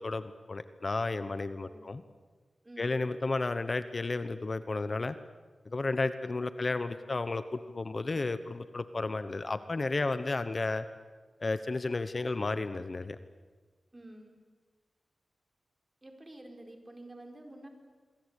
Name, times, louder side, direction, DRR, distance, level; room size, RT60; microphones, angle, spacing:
voice 1, 0.0-2.0 2.8-5.2 5.6-10.9 11.4-13.2, left 3 dB, 40° left, 11 dB, 1.0 m, -32 dB
voice 2, 1.6-1.9 2.6-3.1 13.9-14.4 16.0-17.7, right 1 dB, 25° right, 4 dB, 4.8 m, -50 dB
27.0 x 23.0 x 8.3 m, 1.4 s
wide cardioid pair, 90°, 0 cm